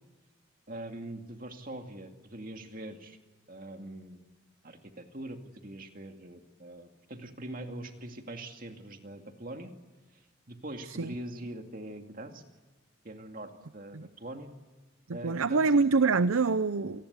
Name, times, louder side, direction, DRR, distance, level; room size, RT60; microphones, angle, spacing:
voice 1, 0.7-3.2 3.5-4.2 4.6-9.7 10.1-12.4 13.0-14.5 15.1-15.7, right 1 dB, 45° right, 5 dB, 2.3 m, -43 dB
voice 2, 15.1-17.1, right 4 dB, 85° right, 14 dB, 0.7 m, -25 dB
28.0 x 19.5 x 8.2 m, 1.3 s
head